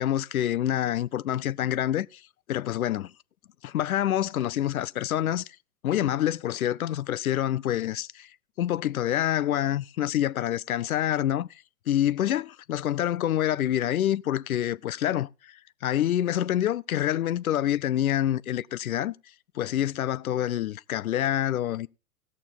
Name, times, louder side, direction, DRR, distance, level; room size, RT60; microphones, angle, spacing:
voice 1, 0.0-2.2 2.5-3.1 3.6-5.5 5.8-8.3 8.6-11.5 11.9-15.6 15.8-19.1 19.6-21.9, left 12 dB, 70° left, 0.5 m, -27 dB
17.5 x 6.8 x 3.8 m
figure-of-eight pair, 110°, 44 cm